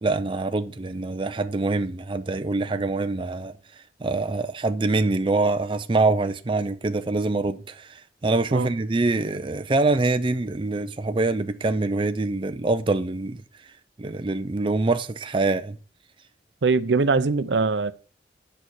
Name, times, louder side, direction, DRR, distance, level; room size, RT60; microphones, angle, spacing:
voice 1, 0.0-3.5 4.0-13.4 14.0-15.8, right 3 dB, 30° right, 0.5 m, -25 dB
voice 2, 16.6-17.9, right 4 dB, 85° right, 0.6 m, -22 dB
8.5 x 5.6 x 6.3 m
head